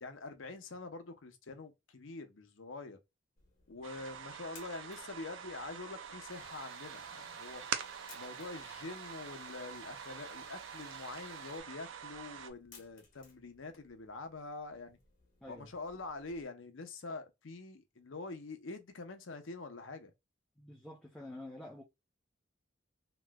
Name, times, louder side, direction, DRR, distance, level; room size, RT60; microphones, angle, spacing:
voice 1, 0.0-3.0 3.7-7.6 8.1-15.0 15.5-20.1, left 3 dB, 80° left, 0.7 m, -45 dB
sound 1, 3.4-16.4, left 4 dB, 45° left, 1.0 m, -64 dB
sound 2, 3.8-12.5, right 7 dB, 75° right, 0.4 m, -45 dB
sound 3, 6.3-11.6, right 4 dB, 50° right, 0.9 m, -54 dB
voice 2, 20.6-21.8, left 1 dB, 5° left, 0.5 m, -48 dB
3.0 x 2.9 x 2.3 m
head